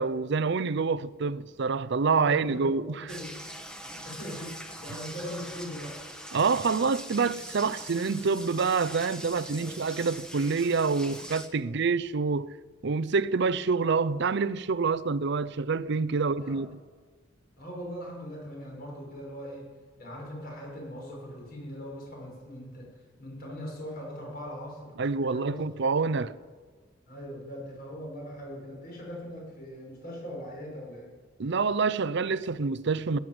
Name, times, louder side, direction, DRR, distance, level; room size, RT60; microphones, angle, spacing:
voice 1, 0.0-3.1 6.3-12.5 12.8-16.7 25.0-26.3 31.4-33.2, right 4 dB, 60° right, 0.5 m, -27 dB
voice 2, 2.2-3.4 3.9-6.0 9.6-9.8 16.1-16.6 17.6-19.6 20.0-22.9 23.2-24.9 25.3-25.7 26.1-26.3 27.1-31.1, equal, 50° left, 6.5 m, -40 dB
sound 1, 3.1-11.5, equal, 5° left, 1.2 m, -42 dB
17.0 x 11.0 x 7.8 m
head